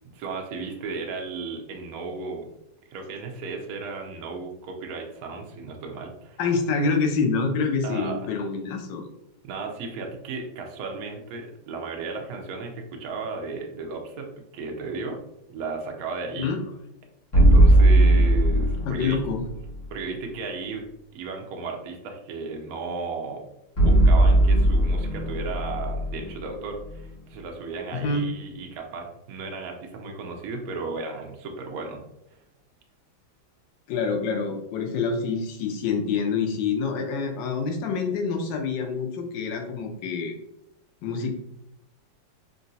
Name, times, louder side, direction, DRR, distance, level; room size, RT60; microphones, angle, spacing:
voice 1, 0.1-2.5 2.9-6.4 7.8-8.3 9.4-15.2 15.5-16.5 17.3-19.2 19.9-23.4 23.8-32.0, right 4 dB, 75° right, 2 dB, 0.8 m, -35 dB
voice 2, 6.4-9.1 16.4-16.6 18.8-19.4 27.9-28.2 33.9-40.4 41.0-41.3, left 4 dB, 75° left, 3 dB, 1.2 m, -26 dB
sound 1, 17.3-19.5 23.8-27.0, right 1 dB, 50° left, 1.2 m, -18 dB
3.8 x 2.2 x 2.6 m, 0.82 s
omnidirectional pair, 2.1 m